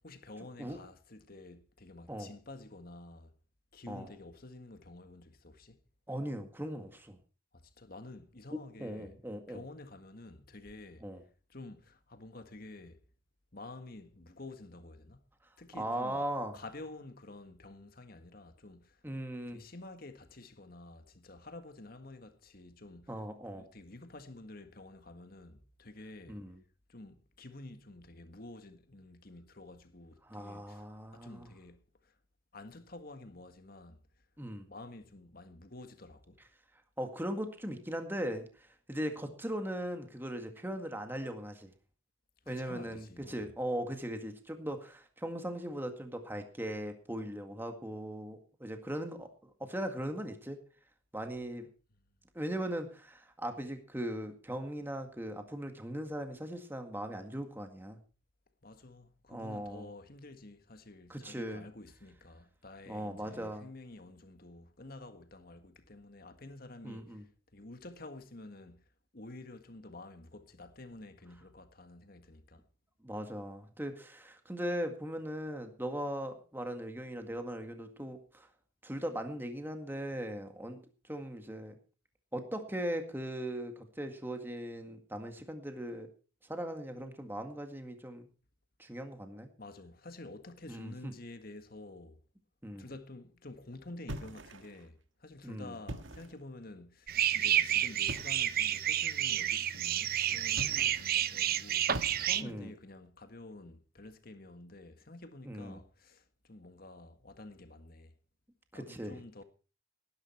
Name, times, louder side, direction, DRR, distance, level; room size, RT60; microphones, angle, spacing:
voice 1, 0.0-3.3 3.7-5.8 7.5-9.1 9.5-11.1 11.5-13.0 13.5-15.2 15.6-16.2 16.5-19.0 19.5-23.2 23.5-26.4 26.9-32.2 32.5-34.0 34.7-36.4 42.4-43.5 58.6-68.8 69.1-72.6 89.6-92.2 92.8-108.1 108.7-109.4, left 2 dB, 50° left, 1.7 m, -50 dB
voice 2, 6.1-7.2 8.5-9.6 11.0-11.2 15.8-16.5 19.0-19.6 23.1-23.6 26.3-26.6 30.2-31.5 34.4-34.7 37.0-41.7 42.5-50.6 51.1-51.7 52.3-58.0 59.3-59.9 61.1-61.6 62.9-63.7 66.8-67.2 73.0-78.5 78.8-81.8 82.3-86.1 86.5-88.3 88.8-89.5 90.7-91.1 92.6-92.8 95.4-95.8 102.4-102.7 105.4-105.8 108.7-109.2, right 1 dB, 10° right, 1.9 m, -39 dB
sound 1, 94.1-94.9 95.7-96.4 98.1-98.5 100.5-101.2 101.9-102.6, right 1 dB, 75° right, 1.6 m, -43 dB
sound 2, 97.1-102.4, right 11 dB, 50° right, 0.8 m, -30 dB
18.5 x 10.5 x 4.5 m
head